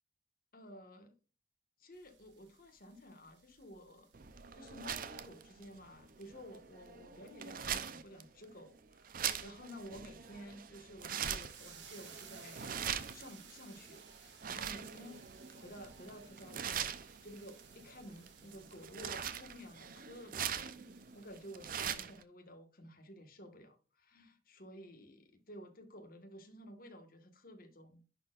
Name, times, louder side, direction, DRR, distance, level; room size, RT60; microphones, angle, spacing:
voice 1, 0.5-1.2 1.8-4.1 4.5-12.7 13.1-15.2 15.5-20.9 21.1-28.0, equal, 55° left, 1.6 m, -53 dB
sound 1, 1.9-21.7, right 7 dB, 80° right, 1.5 m, -60 dB
sound 2, 4.1-22.2, right 8 dB, 50° right, 0.6 m, -43 dB
10.5 x 4.3 x 2.5 m
head